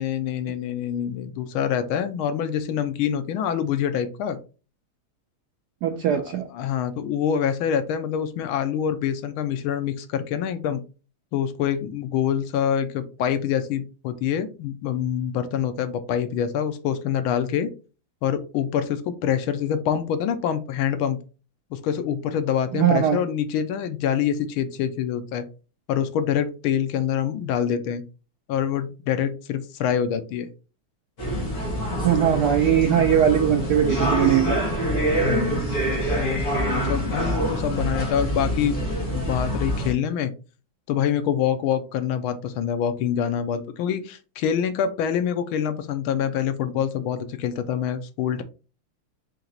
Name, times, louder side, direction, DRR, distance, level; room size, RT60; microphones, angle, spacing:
voice 1, 0.0-4.4 6.1-10.8 11.3-17.7 18.2-21.2 21.7-25.4 25.9-28.0 28.5-30.5 35.1-35.7 36.2-38.8 39.1-40.3 40.9-48.4, left 8 dB, 80° left, 10 dB, 1.4 m, -26 dB
voice 2, 5.8-6.5 22.7-23.2 32.0-34.6, right 9 dB, 80° right, 5 dB, 0.9 m, -20 dB
sound 1, 31.2-39.9, right 1 dB, 40° left, 1.6 m, -25 dB
4.5 x 2.8 x 3.9 m, 0.34 s
omnidirectional pair, 2.3 m